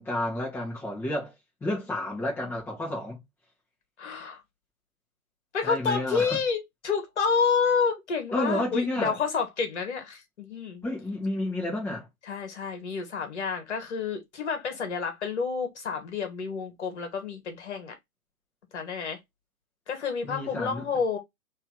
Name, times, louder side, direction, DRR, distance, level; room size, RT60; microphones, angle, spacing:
voice 1, 0.0-1.3 1.6-3.2 5.6-6.4 8.3-9.2 10.8-12.1 20.2-20.8, left 1 dB, 5° left, 1.2 m, -30 dB
voice 2, 4.0-4.4 5.5-10.8 12.2-17.9 18.7-19.2 19.9-21.2, left 5 dB, 50° left, 1.6 m, -29 dB
3.3 x 3.1 x 3.7 m
figure-of-eight pair, 130°, 43 cm